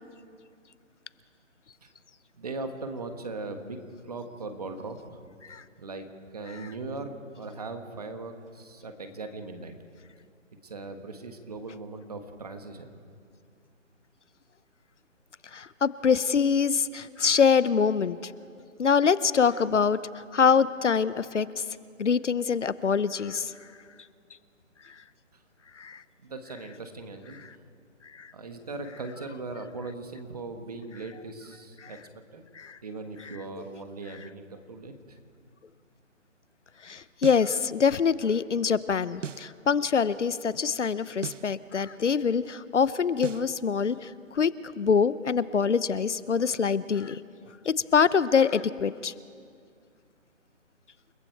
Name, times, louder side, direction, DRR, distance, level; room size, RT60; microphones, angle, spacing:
voice 1, 2.4-3.8 4.0-5.2 5.8-6.1 6.3-9.7 10.6-12.9 25.3-25.4 26.2-27.4 28.3-32.0 32.3-32.4 32.8-35.2, right 3 dB, 30° right, 6 dB, 1.6 m, -39 dB
voice 2, 15.5-18.3 18.8-20.0 20.3-21.5 22.0-23.5 25.8-26.0 28.2-28.3 31.8-31.9 32.6-32.8 36.8-47.2 47.6-49.1, left 6 dB, 65° left, 16 dB, 0.9 m, -24 dB
sound 1, 37.2-37.5 39.2-39.5 41.2-41.5 43.2-43.5, right 7 dB, 70° right, 0.8 m, -37 dB
29.5 x 19.0 x 4.6 m, 2.3 s
hypercardioid pair, 175°, 38 cm